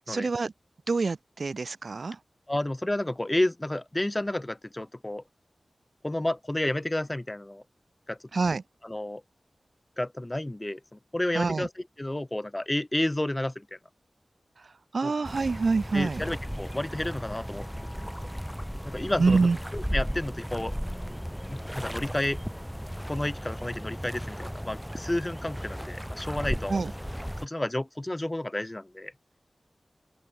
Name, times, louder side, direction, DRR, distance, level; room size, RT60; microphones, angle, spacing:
voice 1, 0.1-0.5 0.9-2.2 8.3-8.6 11.3-11.7 14.9-16.2 19.2-19.6 26.7-26.9, right 4 dB, 70° right, 1.7 m, -26 dB
voice 2, 2.5-5.2 6.0-7.6 8.1-8.2 8.8-9.2 10.0-11.7 12.0-13.8 15.0-15.1 15.9-18.1 18.8-20.7 21.5-22.4 23.1-26.8 27.4-29.1, left 1 dB, 25° left, 2.6 m, -31 dB
sound 1, 15.2-27.5, equal, ahead, 5.7 m, -35 dB
open air
cardioid pair, 45°, 0 cm